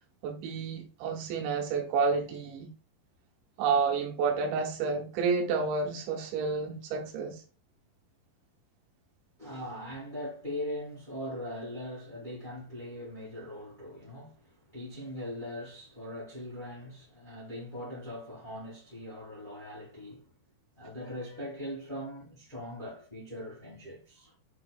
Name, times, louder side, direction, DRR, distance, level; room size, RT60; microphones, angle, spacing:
voice 1, 0.2-2.7 3.6-7.4, right 5 dB, 85° right, 3.2 m, -30 dB
voice 2, 9.4-20.3 20.8-24.3, left 1 dB, 35° left, 0.7 m, -41 dB
7.6 x 2.8 x 2.3 m
omnidirectional pair, 4.9 m